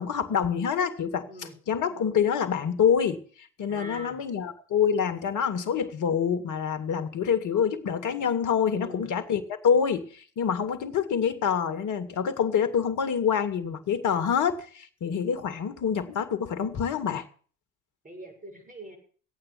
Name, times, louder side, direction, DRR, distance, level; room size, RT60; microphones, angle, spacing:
voice 1, 0.0-1.3 1.7-17.2, left 7 dB, 50° left, 2.0 m, -26 dB
voice 2, 3.7-4.2 8.7-9.1 18.0-19.0, right 1 dB, 20° right, 7.1 m, -42 dB
13.5 x 8.9 x 8.4 m
hypercardioid pair, 65°, 38 cm